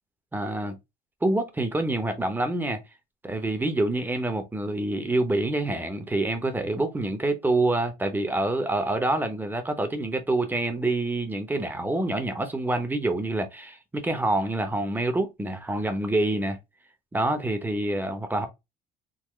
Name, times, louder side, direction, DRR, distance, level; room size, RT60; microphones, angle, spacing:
voice 1, 0.3-0.8 1.2-2.8 3.2-16.6 17.1-18.5, right 2 dB, 10° right, 0.8 m, -26 dB
3.8 x 2.1 x 3.1 m
cardioid pair, 110°, 17 cm